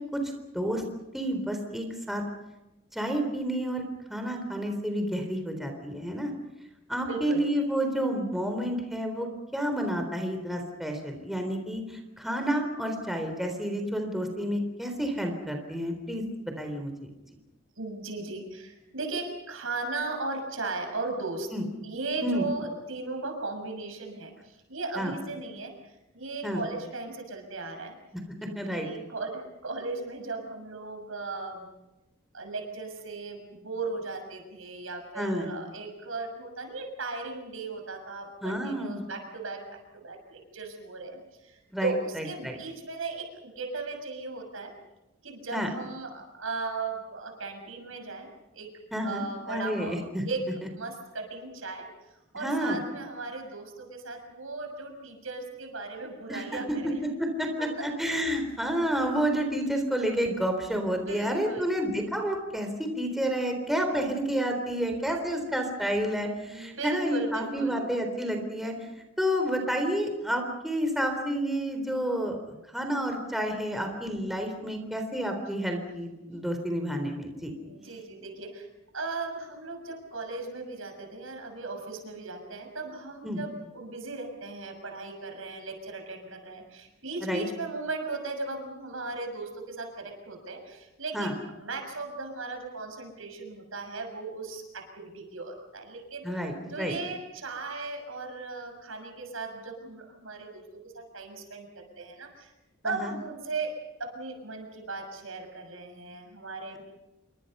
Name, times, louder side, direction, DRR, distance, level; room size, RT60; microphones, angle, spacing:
voice 1, 1.1-2.2 2.9-3.8 4.1-6.3 6.9-9.3 9.5-16.2 16.6-16.9 21.5-21.6 22.2-22.4 25.0-25.1 26.4-26.6 28.6-28.9 35.2-35.5 38.4-39.0 41.7-42.6 45.5-45.7 48.9-50.2 52.3-52.8 56.3-68.7 69.2-72.4 72.7-77.5 83.2-83.4 87.2-87.4 91.1-91.3 96.2-96.9 102.9-103.1, equal, ahead, 4 dB, 3.8 m, -30 dB
voice 2, 7.1-7.4 17.8-21.5 21.8-27.9 28.4-31.7 32.3-44.7 45.2-48.3 48.5-48.7 49.0-51.9 52.3-57.0 57.6-57.9 60.9-61.8 63.7-64.1 65.4-65.5 66.5-67.8 77.6-78.7 78.9-96.2 96.7-102.5 102.8-106.8, right 3 dB, 75° right, 4 dB, 6.5 m, -37 dB
28.0 x 24.5 x 5.6 m, 0.97 s
head